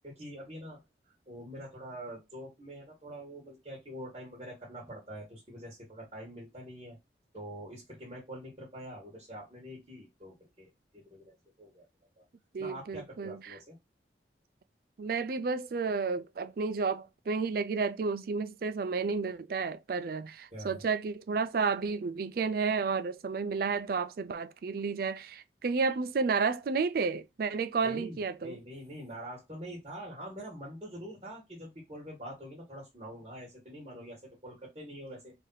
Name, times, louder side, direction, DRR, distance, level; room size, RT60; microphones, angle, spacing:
voice 1, 0.0-0.8 1.3-7.0 7.3-11.9 12.2-12.3 12.6-13.8 20.5-20.8 27.8-35.3, equal, 30° right, 1.5 m, -45 dB
voice 2, 12.5-13.6 15.0-28.6, right 4 dB, 55° right, 0.4 m, -31 dB
3.3 x 2.7 x 3.9 m
head